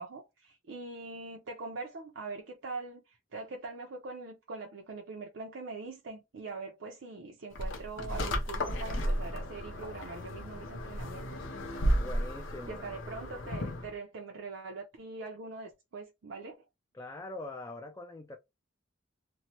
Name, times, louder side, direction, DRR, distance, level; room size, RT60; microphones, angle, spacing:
voice 1, 0.0-11.5 12.6-16.6, right 3 dB, 75° right, 0.5 m, -43 dB
sound 1, 7.6-13.9, equal, 75° left, 0.6 m, -33 dB
voice 2, 11.9-12.8 16.9-18.4, left 2 dB, 15° left, 0.3 m, -43 dB
3.1 x 2.1 x 2.7 m
head